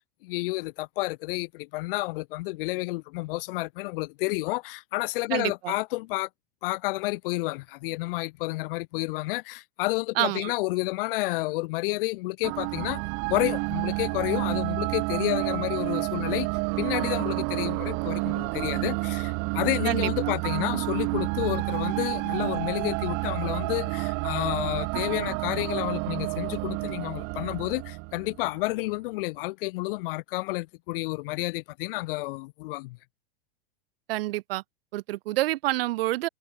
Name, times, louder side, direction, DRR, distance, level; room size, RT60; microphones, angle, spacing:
voice 1, 0.2-6.3 6.6-13.0 13.3-16.5 16.8-33.0, left 22 dB, 65° left, 2.6 m, -30 dB
voice 2, 5.3-5.7 10.2-10.5 19.8-20.1 34.1-34.6 34.9-36.3, right 17 dB, 70° right, 6.0 m, -27 dB
sound 1, 12.4-28.6, right 33 dB, 50° right, 1.4 m, -29 dB
supercardioid pair, 125°, 30 cm